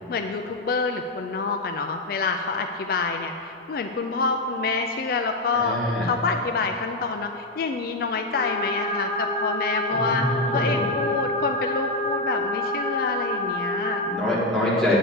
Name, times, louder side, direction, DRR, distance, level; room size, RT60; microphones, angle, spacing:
voice 1, 0.1-5.8 6.0-10.3 10.5-14.0, left 4 dB, 55° left, 5 dB, 0.3 m, -27 dB
voice 2, 5.5-6.1 9.9-10.8 14.0-15.0, left 1 dB, ahead, -9 dB, 1.8 m, -25 dB
sound 1, 8.3-14.2, left 1 dB, 30° left, 0.8 m, -27 dB
9.5 x 3.6 x 6.9 m, 2.9 s
head